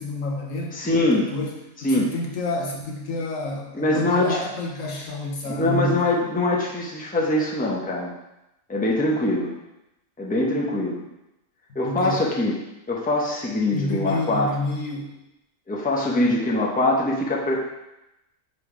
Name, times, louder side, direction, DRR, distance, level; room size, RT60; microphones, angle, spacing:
voice 1, 0.0-0.8 1.1-6.1 11.8-12.3 13.7-15.2 16.2-16.3, left 2 dB, 80° left, 0 dB, 1.4 m, -29 dB
voice 2, 0.7-1.3 1.8-2.1 3.8-4.4 5.5-8.1 8.7-9.5 10.2-11.0 11.7-12.5 12.9-14.5 15.7-17.6, left 2 dB, 10° left, -3 dB, 0.8 m, -23 dB
5.3 x 4.2 x 4.9 m, 0.91 s
omnidirectional pair, 1.4 m